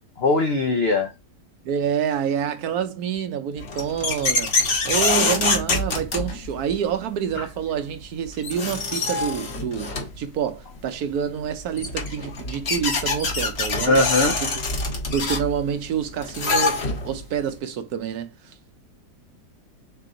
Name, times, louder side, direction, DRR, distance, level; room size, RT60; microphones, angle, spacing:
voice 1, 0.2-1.1 13.9-14.3, left 2 dB, 80° left, 0.5 m, -20 dB
voice 2, 1.6-14.6 15.1-18.5, right 8 dB, 70° right, 1.0 m, -28 dB
sound 1, 3.6-6.7 8.0-8.1 8.4-10.2 11.4-11.5 11.8-17.2, left 3 dB, 45° left, 1.1 m, -25 dB
3.8 x 3.4 x 3.7 m
omnidirectional pair, 1.9 m